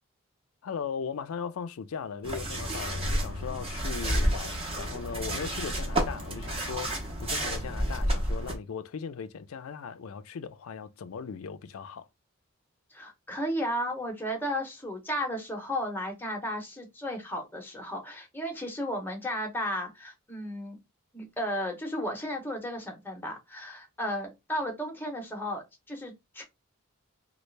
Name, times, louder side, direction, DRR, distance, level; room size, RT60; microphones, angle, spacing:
voice 1, 0.6-12.1, left 6 dB, 75° left, 0.4 m, -38 dB
sound 1, 2.2-8.6, right 1 dB, 25° right, 0.8 m, -30 dB
voice 2, 12.9-20.8 21.1-26.4, equal, 10° left, 0.8 m, -34 dB
3.1 x 2.4 x 3.2 m
head